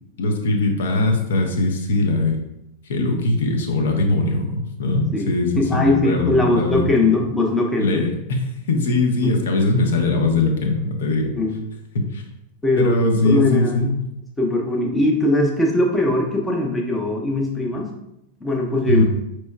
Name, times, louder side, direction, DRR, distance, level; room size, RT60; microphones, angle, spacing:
voice 1, 0.2-2.4 2.9-6.9 7.8-11.3 11.9-12.2 12.7-14.0 18.9-19.0, left 2 dB, 60° left, 3 dB, 0.6 m, -21 dB
voice 2, 5.1-8.0 9.2-9.3 11.4-11.6 12.6-13.0 13.2-13.7 14.4-17.9 18.4-19.0, left 2 dB, 10° left, 1 dB, 0.7 m, -20 dB
5.2 x 3.1 x 2.2 m, 0.83 s
figure-of-eight pair, 90°, 0 cm